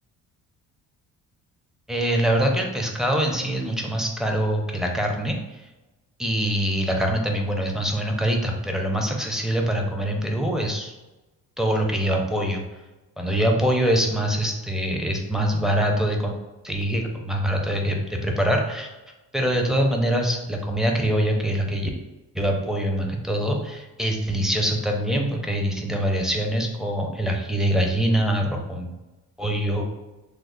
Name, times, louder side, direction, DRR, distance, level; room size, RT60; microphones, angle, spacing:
voice 1, 1.9-5.6 6.2-10.9 11.6-12.6 13.2-16.3 16.6-18.9 19.3-21.9 22.3-28.9 29.4-29.9, equal, ahead, 2 dB, 0.5 m, -24 dB
3.2 x 2.0 x 3.7 m, 1.1 s
cardioid pair, 90°, 31 cm